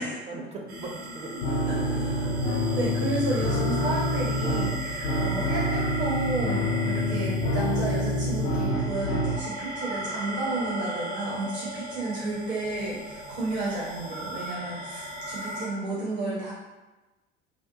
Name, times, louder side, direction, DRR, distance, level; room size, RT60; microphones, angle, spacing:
voice 1, 0.0-2.5 5.0-5.5, right 2 dB, 20° right, 0 dB, 0.4 m, -42 dB
sound 1, 0.7-15.7, right 1 dB, 80° right, 1.0 m, -36 dB
sound 2, 1.4-9.4, left 1 dB, 45° left, 0.5 m, -27 dB
voice 2, 2.4-16.5, right 2 dB, 60° right, -5 dB, 0.6 m, -32 dB
2.4 x 2.0 x 2.7 m, 1.1 s
figure-of-eight pair, 65°, 32 cm